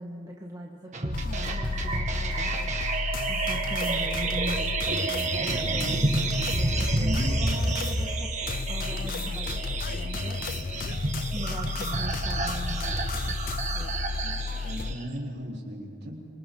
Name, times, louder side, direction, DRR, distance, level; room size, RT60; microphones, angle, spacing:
voice 1, 0.0-2.7 3.3-6.1 6.6-8.3 8.7-10.4 11.2-13.0 13.3-13.4 13.7-14.1, equal, 20° right, -2 dB, 1.6 m, -40 dB
sound 1, 0.9-15.0, right 3 dB, 35° right, 1.8 m, -30 dB
sound 2, 1.1-14.9, left 4 dB, 45° left, 0.4 m, -33 dB
voice 2, 5.6-6.0 6.7-7.4 14.2-14.3 14.6-16.3, equal, 55° right, -3 dB, 4.2 m, -35 dB
26.5 x 26.0 x 4.0 m, 2.2 s
head